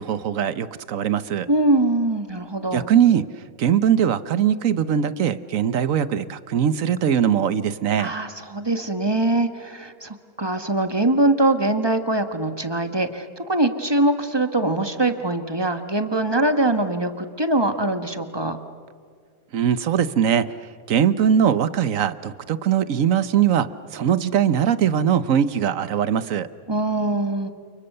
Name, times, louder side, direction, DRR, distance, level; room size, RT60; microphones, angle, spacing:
voice 1, 0.0-1.5 2.7-3.2 3.6-8.1 19.5-20.5 20.9-26.5, right 9 dB, 65° right, 14 dB, 1.3 m, -21 dB
voice 2, 1.5-2.9 8.0-18.6 26.7-27.5, right 2 dB, 20° right, 7 dB, 1.5 m, -22 dB
29.5 x 29.5 x 6.8 m, 2.1 s
omnidirectional pair, 1.5 m